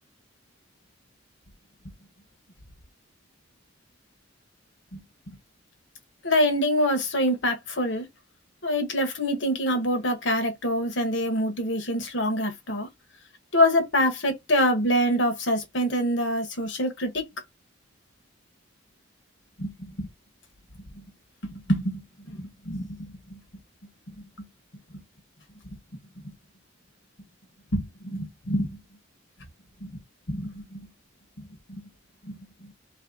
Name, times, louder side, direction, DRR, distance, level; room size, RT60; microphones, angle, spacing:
voice 1, 6.2-8.0 8.6-12.9 13.5-17.3 19.6-20.1 20.9-21.0 21.4-23.4 24.4-24.5 27.7-28.8 29.8-29.9 30.3-30.9 31.7-31.8 32.2-32.4, equal, 70° left, 1.6 m, -26 dB
3.4 x 3.3 x 3.9 m
head